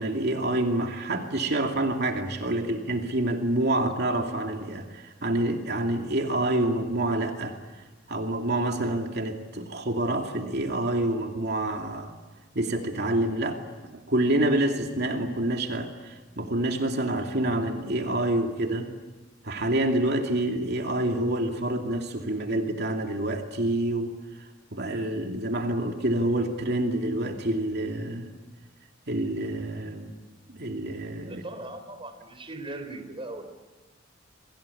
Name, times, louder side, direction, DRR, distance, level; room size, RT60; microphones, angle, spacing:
voice 1, 0.0-7.6 8.1-12.1 12.5-13.6 13.9-18.9 19.4-24.1 24.7-28.3 29.1-30.1 30.5-31.4, right 1 dB, 55° right, 3 dB, 2.6 m, -27 dB
voice 2, 31.2-33.4, right 2 dB, 30° right, 8 dB, 3.6 m, -39 dB
29.0 x 23.0 x 8.6 m, 1.2 s
head